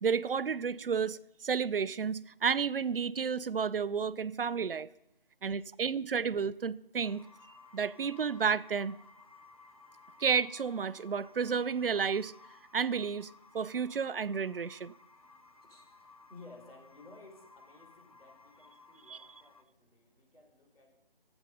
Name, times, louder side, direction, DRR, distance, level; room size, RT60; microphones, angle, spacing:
voice 1, 0.0-4.9 5.4-7.2 7.7-9.0 10.2-12.3 12.7-13.3 13.5-14.9 19.1-19.2, right 6 dB, 70° right, 0.5 m, -31 dB
sound 1, 7.0-19.6, left 4 dB, 40° left, 0.7 m, -58 dB
voice 2, 15.6-21.0, left 2 dB, 75° left, 4.7 m, -56 dB
19.0 x 8.0 x 5.3 m
figure-of-eight pair, 180°, 29 cm